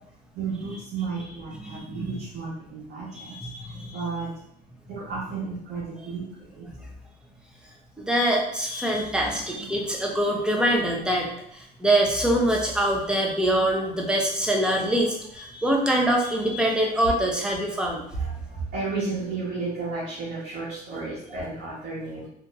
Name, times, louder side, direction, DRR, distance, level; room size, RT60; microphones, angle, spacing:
voice 1, 0.3-3.3 3.9-4.3 4.9-6.2 6.5-6.7 9.3-9.5 18.1-22.3, right 4 dB, 75° right, -7 dB, 1.2 m, -32 dB
voice 2, 1.6-2.2 3.2-4.0 8.0-18.0, right 1 dB, 5° right, -1 dB, 0.7 m, -24 dB
3.5 x 2.8 x 2.5 m, 0.72 s
cardioid pair, 110°, 17 cm